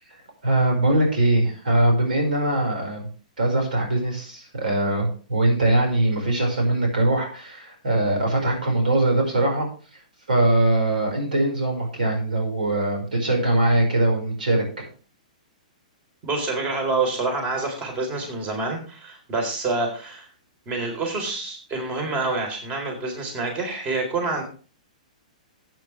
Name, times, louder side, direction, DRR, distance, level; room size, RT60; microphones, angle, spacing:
voice 1, 0.4-3.1 3.4-9.7 10.3-14.9, right 1 dB, 85° right, 2 dB, 5.3 m, -22 dB
voice 2, 16.2-20.3 20.7-24.4, right 3 dB, 30° right, 3 dB, 4.0 m, -27 dB
15.0 x 9.0 x 3.4 m, 0.39 s
hypercardioid pair, 130°, 4 cm